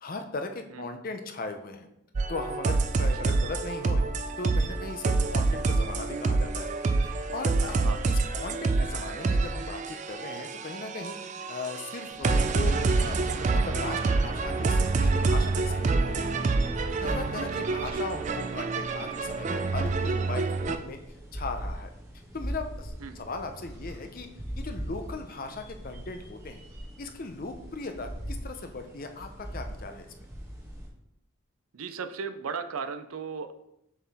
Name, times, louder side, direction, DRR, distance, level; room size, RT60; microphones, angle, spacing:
voice 1, 0.0-1.9 2.3-4.0 4.4-6.7 7.0-11.2 11.5-16.5 17.0-21.0 21.3-21.9 22.3-24.3 24.6-26.6 27.0-30.1, left 3 dB, 40° left, 6 dB, 0.6 m, -38 dB
sound 1, 2.2-20.8, right 3 dB, 35° right, 0.3 m, -27 dB
sound 2, 12.1-30.9, equal, 15° right, 1.6 m, -41 dB
voice 2, 31.7-33.5, right 5 dB, 85° right, 9 dB, 0.5 m, -36 dB
6.9 x 4.3 x 3.5 m, 0.80 s
head